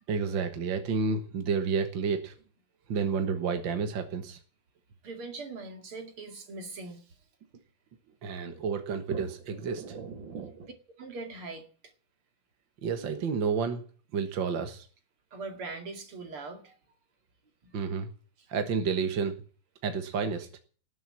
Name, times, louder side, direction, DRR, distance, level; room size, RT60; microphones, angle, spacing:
voice 1, 0.1-2.3 2.9-4.4 8.2-10.7 12.8-13.8 14.1-14.9 17.7-18.1 18.5-19.4 19.8-20.5, right 5 dB, 60° right, 2.1 m, -30 dB
voice 2, 5.0-7.2 11.0-11.7 15.3-16.8 17.6-17.8 18.4-18.5, right 3 dB, 80° right, 3.2 m, -41 dB
19.0 x 7.9 x 8.6 m
omnidirectional pair, 2.4 m